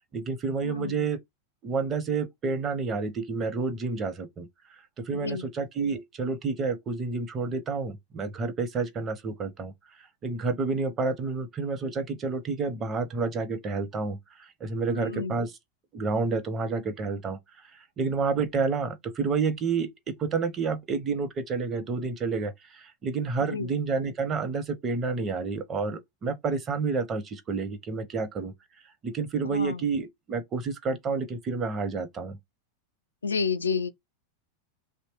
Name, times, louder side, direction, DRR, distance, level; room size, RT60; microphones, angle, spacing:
voice 1, 0.1-1.2 1.6-4.5 5.0-9.7 10.0-15.5 15.9-17.7 18.0-28.5 29.0-32.4, right 4 dB, 30° right, 0.7 m, -29 dB
voice 2, 0.6-1.0 5.1-5.4 14.9-15.3 23.5-23.7 29.5-29.8 33.2-33.9, left 5 dB, 90° left, 0.4 m, -30 dB
3.0 x 2.1 x 2.9 m
hypercardioid pair, 95°, 0 cm